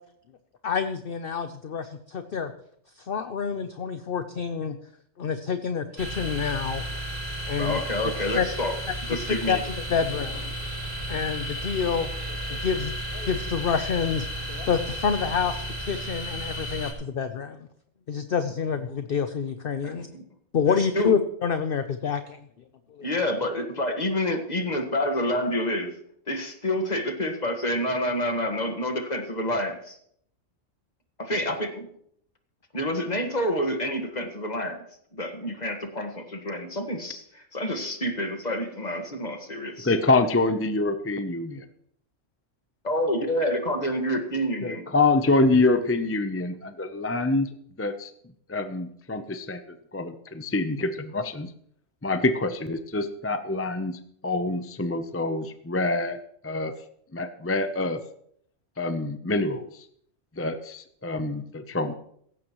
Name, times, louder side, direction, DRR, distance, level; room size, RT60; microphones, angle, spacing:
voice 1, 0.6-2.5 3.0-4.8 5.2-6.8 7.5-7.8 8.3-8.5 9.2-10.5 11.1-12.1 12.5-17.7 18.1-20.1 20.5-22.4 22.9-23.1, left 6 dB, 50° left, 9 dB, 0.9 m, -28 dB
sound 1, 6.0-16.9, equal, 40° right, 5.1 m, -33 dB
voice 2, 7.6-8.7 9.1-9.6 19.8-20.2 20.7-21.1 23.0-25.9 26.3-30.0 31.2-31.9 32.7-34.8 35.1-37.2 37.5-39.9 42.8-44.8, left 1 dB, 35° left, 5 dB, 1.8 m, -28 dB
voice 3, 39.8-41.7 44.6-47.5 47.8-48.1 48.5-49.6 49.9-51.5 52.0-56.2 56.4-56.7 57.1-58.0 58.8-59.7 60.4-61.9, left 2 dB, 15° left, 9 dB, 0.5 m, -26 dB
17.0 x 15.5 x 3.1 m, 0.67 s
omnidirectional pair, 1.3 m